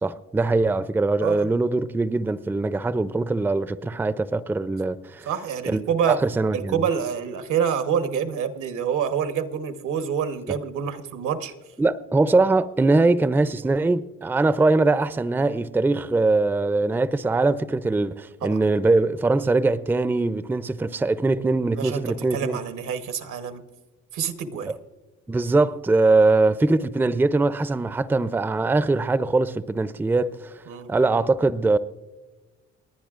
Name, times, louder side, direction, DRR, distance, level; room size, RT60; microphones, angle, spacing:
voice 1, 0.0-5.3 5.7-6.8 11.8-22.6 24.7-24.8 25.3-30.5 30.9-31.8, right 3 dB, 5° right, 0.4 m, -22 dB
voice 2, 1.2-1.5 5.3-6.2 6.5-11.5 18.4-18.6 21.8-23.6 24.1-24.7 30.7-30.9, right 7 dB, 80° right, 1.1 m, -27 dB
29.5 x 10.0 x 2.4 m
cardioid pair, 90°, 30 cm